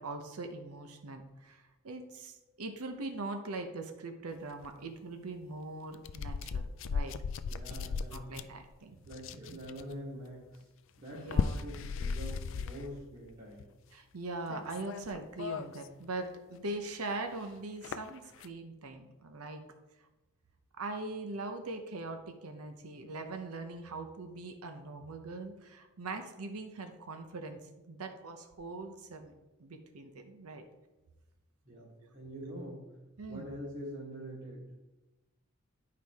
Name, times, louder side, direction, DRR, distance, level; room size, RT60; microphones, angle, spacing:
voice 1, 0.0-7.1 7.7-7.8 8.1-9.0 9.5-9.6 11.1-11.7 13.9-19.6 20.8-29.3 29.6-30.7 32.0-32.1 33.2-33.5, right 2 dB, 85° right, 6 dB, 0.8 m, -41 dB
sound 1, 4.6-4.7 5.9-8.7 9.1-9.9 11.1-13.0 13.3-13.6 14.5-15.9 16.2-16.3 17.0-17.1 17.8-18.5, left 5 dB, 60° left, 0.3 m, -36 dB
voice 2, 7.4-8.5 9.0-10.7 11.0-13.7 31.6-32.9 33.3-34.6, equal, 35° right, -7 dB, 1.6 m, -45 dB
11.0 x 4.8 x 3.5 m, 1.0 s
head